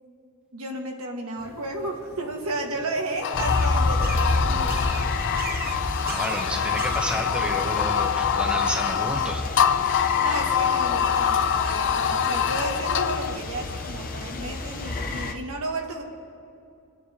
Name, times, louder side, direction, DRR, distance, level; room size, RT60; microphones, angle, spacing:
voice 1, 0.5-4.9 10.2-16.0, right 2 dB, 70° right, 1 dB, 1.7 m, -33 dB
sound 1, 1.4-7.5, right 6 dB, 45° right, 0.5 m, -41 dB
sound 2, 3.2-13.4, left 8 dB, 55° left, 0.4 m, -25 dB
sound 3, 3.3-15.3, left 2 dB, 40° left, 0.8 m, -30 dB
voice 2, 6.0-9.5, right 1 dB, 5° right, 0 dB, 1.1 m, -31 dB
29.0 x 9.8 x 2.9 m, 2.6 s
head